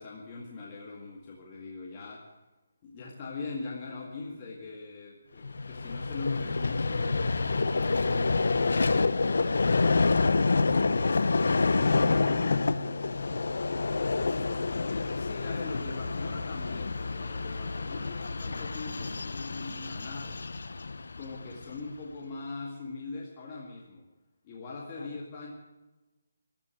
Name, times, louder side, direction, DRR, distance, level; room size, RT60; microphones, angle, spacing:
voice 1, 0.0-2.3 2.8-10.3 15.1-20.4 21.2-24.1 24.4-25.5, left 3 dB, 25° left, -3 dB, 2.1 m, -42 dB
Vehicle, 5.4-21.8, left 3 dB, 80° left, 0.9 m, -28 dB
voice 2, 10.8-13.5 14.2-14.8 25.0-25.2, left 2 dB, 50° left, 0 dB, 5.7 m, -48 dB
14.5 x 12.5 x 7.7 m, 1.1 s
hypercardioid pair, 170°, 0 cm